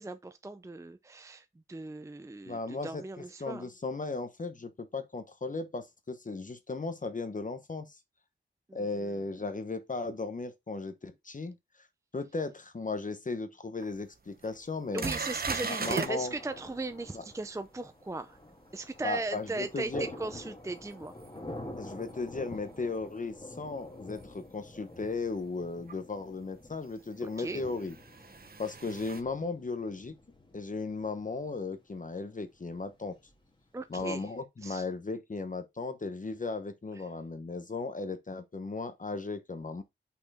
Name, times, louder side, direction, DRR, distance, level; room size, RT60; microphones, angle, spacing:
voice 1, 0.0-3.7 8.7-9.2 14.9-18.4 18.7-21.1 27.2-27.6 33.7-34.3 34.6-34.9 36.9-37.1, right 3 dB, 15° right, 0.5 m, -38 dB
voice 2, 2.5-3.0 3.4-8.0 8.7-11.6 12.1-15.0 15.7-16.3 19.0-20.1 21.8-28.0 28.6-30.1 30.5-33.2 33.9-39.8, left 3 dB, 40° left, 1.0 m, -36 dB
sound 1, 13.8-13.9 14.4-14.5 15.0-16.1 21.2-21.3 24.1-24.2 25.9-26.0 27.4-29.2, right 4 dB, 50° right, 0.9 m, -36 dB
Thunder, 15.2-34.1, left 1 dB, 25° left, 1.8 m, -49 dB
5.7 x 4.3 x 4.2 m
wide cardioid pair, 105°, 20 cm